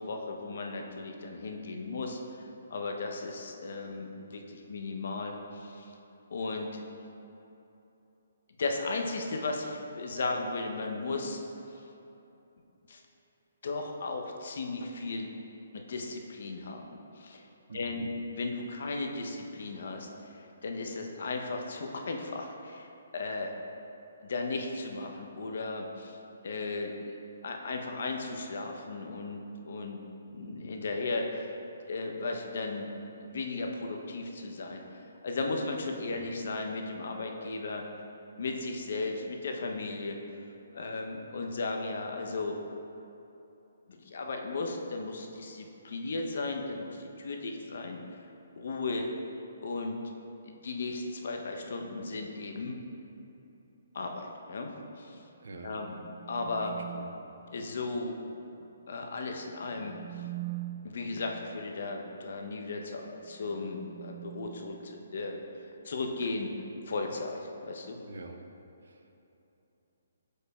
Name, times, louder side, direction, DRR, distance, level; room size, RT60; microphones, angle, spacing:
voice 1, 0.0-5.9 6.3-6.8 8.6-11.4 12.9-13.0 13.6-15.3 15.7-17.4 17.7-18.1 18.4-22.9 23.1-23.5 24.2-26.2 26.4-27.1 27.4-30.0 30.3-31.5 31.9-32.9 33.2-37.8 38.4-40.2 40.7-42.6 43.9-48.2 48.6-49.1 49.6-50.0 50.4-52.8 53.9-54.7 55.0-55.2 55.6-56.0 56.3-56.7 57.5-58.1 58.9-60.2 60.8-65.4 65.8-66.5 66.8-68.0, left 3 dB, 65° left, 2 dB, 0.6 m, -36 dB
voice 2, 17.7-18.1 36.1-36.2 55.4-55.7 56.6-57.1 68.1-68.4 68.8-69.1, right 3 dB, 75° right, 4 dB, 0.6 m, -46 dB
sound 1, 55.6-57.4 59.5-61.2 63.2-65.6, right 16 dB, 30° right, 0.3 m, -44 dB
8.2 x 5.0 x 2.3 m, 2.9 s
hypercardioid pair, 150°, 0 cm